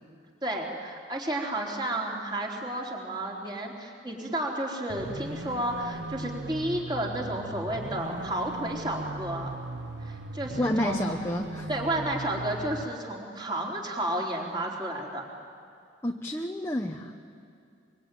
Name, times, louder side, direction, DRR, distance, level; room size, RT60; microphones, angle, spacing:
voice 1, 0.4-9.5 10.0-11.2 11.7-15.2, right 1 dB, 25° right, -1 dB, 3.7 m, -32 dB
sound 1, 4.9-12.8, right 2 dB, 65° right, 1.1 m, -38 dB
voice 2, 10.6-11.7 16.0-17.1, left 1 dB, 15° left, 2 dB, 1.0 m, -29 dB
25.0 x 23.5 x 9.2 m, 2.4 s
head